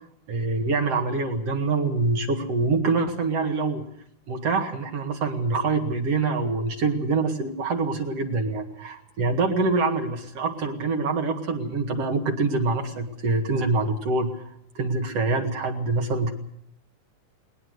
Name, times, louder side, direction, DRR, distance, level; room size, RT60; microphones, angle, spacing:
voice 1, 0.3-3.8 4.3-14.4 14.8-16.3, right 3 dB, 55° right, 4 dB, 2.9 m, -25 dB
20.5 x 19.5 x 8.0 m, 0.71 s
omnidirectional pair, 3.6 m